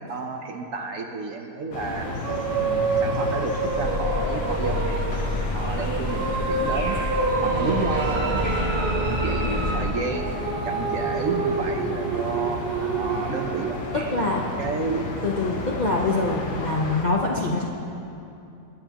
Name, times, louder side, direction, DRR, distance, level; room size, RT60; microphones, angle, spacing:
voice 1, 0.0-2.1 2.6-5.1 5.5-7.0 7.4-12.7 13.0-14.2 14.6-15.0, right 4 dB, 55° right, 3 dB, 1.1 m, -31 dB
sound 1, 1.7-17.1, left 2 dB, 75° left, 1.9 m, -32 dB
sound 2, 2.0-13.8, right 4 dB, 90° right, 0.5 m, -28 dB
sound 3, 3.7-9.8, equal, 25° right, 2.1 m, -28 dB
voice 2, 14.1-14.4 15.2-17.6, left 2 dB, 40° left, -3 dB, 0.6 m, -24 dB
23.0 x 9.3 x 2.9 m, 2.7 s
omnidirectional pair, 1.8 m